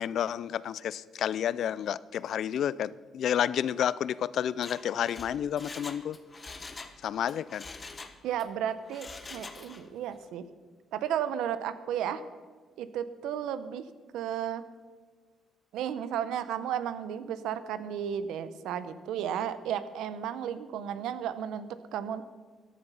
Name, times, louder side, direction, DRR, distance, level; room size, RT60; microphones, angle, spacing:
voice 1, 0.0-6.2 7.0-7.7, left 9 dB, 70° left, 19 dB, 0.4 m, -30 dB
Mechanisms, 4.5-7.0 7.3-8.5 8.9-9.9 10.2-10.3, left 3 dB, 30° left, 1.2 m, -44 dB
voice 2, 8.2-10.5 10.9-12.2 12.8-13.9 14.1-14.6 15.7-22.2, right 9 dB, 90° right, 13 dB, 0.8 m, -33 dB
14.5 x 11.0 x 5.6 m, 1.5 s
cardioid pair, 90°, 0 cm